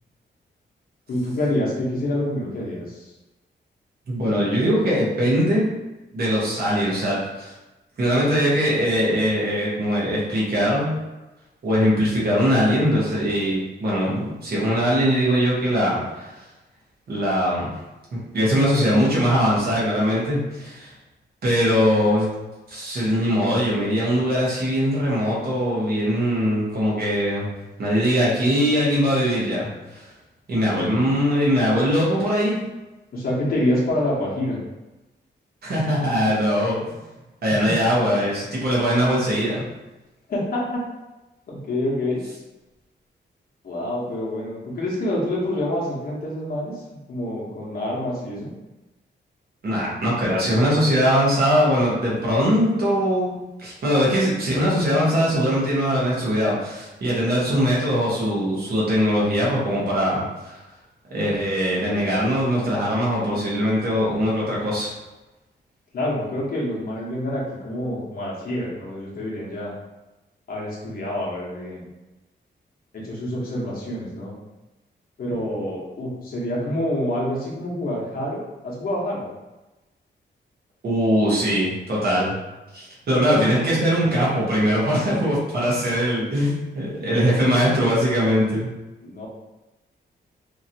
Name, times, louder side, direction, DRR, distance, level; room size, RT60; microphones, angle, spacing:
voice 1, 1.1-3.1 33.1-34.6 37.5-37.6 40.3-40.8 41.5-42.2 43.6-48.5 65.9-69.7 70.5-71.9 72.9-74.3 75.2-79.3 89.0-89.3, left 1 dB, 50° left, -5 dB, 0.8 m, -27 dB
voice 2, 4.1-5.7 6.1-7.5 8.0-10.9 11.6-16.3 17.1-17.7 18.1-20.9 21.4-22.3 22.7-27.5 27.8-30.0 30.5-32.6 35.6-36.9 37.4-39.6 49.6-60.6 61.1-64.9 80.8-82.3 82.7-88.7, equal, 55° right, -6 dB, 1.0 m, -21 dB
2.9 x 2.7 x 2.7 m, 1.1 s
wide cardioid pair, 180°, 19 cm